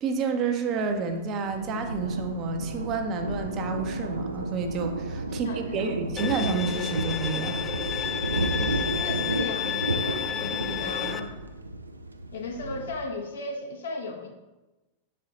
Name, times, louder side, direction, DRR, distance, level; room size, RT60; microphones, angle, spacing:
voice 1, 0.0-8.6, right 4 dB, 35° right, 5 dB, 0.7 m, -30 dB
Thunder, 0.7-13.1, right 2 dB, 80° right, 0.4 m, -32 dB
voice 2, 5.3-6.0 8.6-11.4 12.3-14.3, left 3 dB, 65° left, 1 dB, 0.9 m, -36 dB
Bowed string instrument, 6.2-11.2, left 9 dB, 25° left, 0.3 m, -31 dB
6.5 x 4.4 x 3.9 m, 1.1 s
figure-of-eight pair, 90°, 0 cm